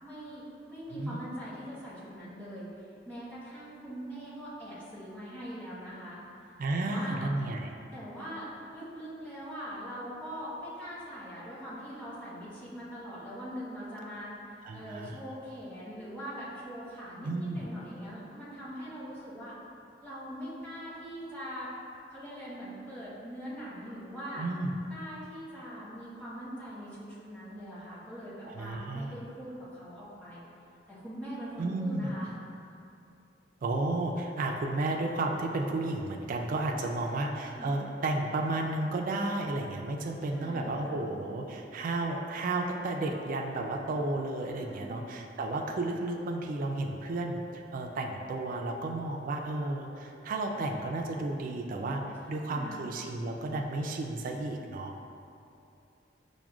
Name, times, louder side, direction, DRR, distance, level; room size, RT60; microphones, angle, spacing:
voice 1, 0.0-2.7 3.1-6.2 6.7-7.3 7.9-19.5 20.0-21.7 22.1-24.5 24.9-30.5 30.9-32.3 37.1-37.8 40.3-41.0 44.5-45.0 52.2-52.8, equal, 10° left, -11 dB, 1.1 m, -42 dB
voice 2, 6.6-7.7 14.6-15.2 17.2-17.6 24.4-24.8 28.4-29.1 31.6-32.1 33.6-47.4 47.7-52.0 52.3-55.1, right 2 dB, 50° right, 2 dB, 0.3 m, -32 dB
5.9 x 2.1 x 2.3 m, 2.7 s
head